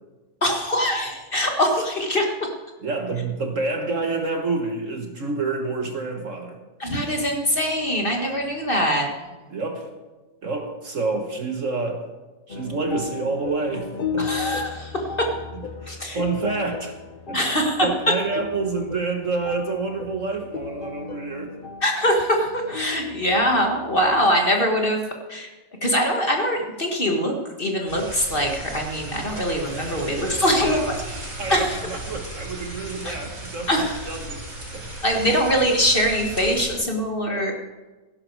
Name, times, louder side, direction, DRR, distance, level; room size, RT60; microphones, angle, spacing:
voice 1, 0.4-2.5 6.8-9.1 14.2-15.3 15.9-16.2 17.3-18.1 21.8-25.0 25.3-25.5 25.8-30.9 31.5-31.8 33.0-33.1 33.7-34.0 35.0-37.5, equal, 30° left, 2 dB, 1.7 m, -23 dB
voice 2, 2.8-6.6 9.5-9.9 10.4-12.1 12.5-14.3 15.5-17.0 17.3-17.4 17.8-21.6 29.6-34.8 35.3-35.4, right 3 dB, 45° right, 4 dB, 1.5 m, -28 dB
sound 1, 12.5-24.3, left 6 dB, 50° left, 0.6 m, -35 dB
sound 2, 27.9-36.8, right 2 dB, 80° right, 6.8 m, -36 dB
17.0 x 10.5 x 4.7 m, 1.2 s
omnidirectional pair, 2.0 m